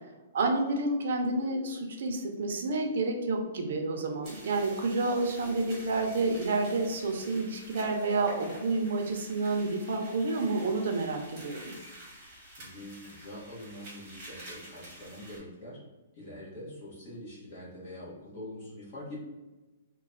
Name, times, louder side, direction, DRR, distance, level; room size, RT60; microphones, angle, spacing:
voice 1, 0.3-11.7, right 3 dB, 55° right, 3 dB, 0.6 m, -29 dB
sound 1, 4.2-15.4, right 1 dB, 20° right, 1.1 m, -49 dB
voice 2, 12.4-15.8 16.1-19.2, left 1 dB, 30° left, -8 dB, 1.4 m, -44 dB
3.2 x 2.2 x 3.8 m, 1.2 s
hypercardioid pair, 175°, 0 cm